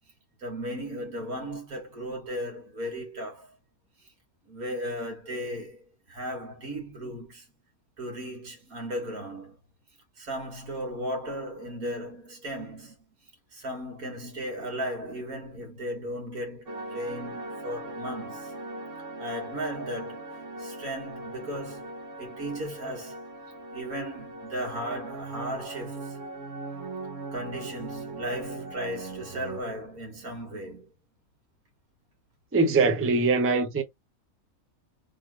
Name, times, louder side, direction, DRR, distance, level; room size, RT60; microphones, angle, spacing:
voice 1, 0.4-3.6 4.5-7.5 8.0-9.6 10.2-13.1 13.5-18.5 19.2-23.2 23.7-26.2 27.3-30.9, equal, 80° right, 2.2 m, -36 dB
sound 1, 16.7-29.6, right 2 dB, 60° right, 1.3 m, -40 dB
voice 2, 32.5-33.8, right 3 dB, 15° right, 0.5 m, -22 dB
3.6 x 3.2 x 3.0 m
omnidirectional pair, 1.5 m